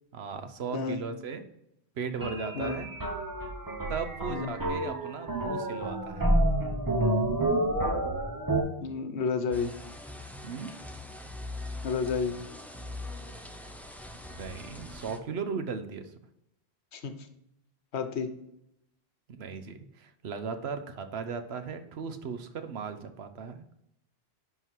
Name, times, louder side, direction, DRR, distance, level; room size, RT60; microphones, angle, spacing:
voice 1, 0.1-1.4 2.0-2.9 3.9-6.3 10.4-10.7 14.4-16.1 19.3-23.9, right 5 dB, 70° right, 9 dB, 1.0 m, -37 dB
voice 2, 0.7-1.0 2.5-2.8 4.3-4.5 8.8-9.7 11.8-12.4 16.9-17.1 17.9-18.3, left 5 dB, 80° left, 8 dB, 1.2 m, -30 dB
sound 1, 2.2-8.6, right 1 dB, 20° right, 0.9 m, -29 dB
sound 2, 9.5-15.2, left 2 dB, ahead, 0.5 m, -42 dB
11.0 x 3.9 x 4.6 m, 0.79 s
omnidirectional pair, 1.1 m